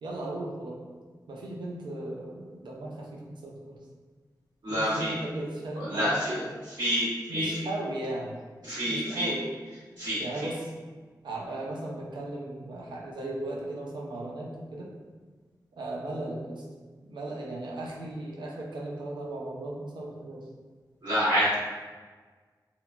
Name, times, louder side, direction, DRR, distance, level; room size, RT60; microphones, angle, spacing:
voice 1, 0.0-0.8 1.3-3.8 4.7-6.5 7.3-8.4 8.9-9.5 10.2-10.7 11.2-14.9 15.7-16.6 17.0-20.4, right 1 dB, 85° right, -2 dB, 0.5 m, -36 dB
voice 2, 4.6-5.1 5.8-6.4 6.8-7.0 7.3-7.5 8.7-9.3 10.0-10.2 21.0-21.5, equal, 65° right, -13 dB, 1.5 m, -27 dB
2.8 x 2.1 x 2.4 m, 1.4 s
cardioid pair, 50°, 8 cm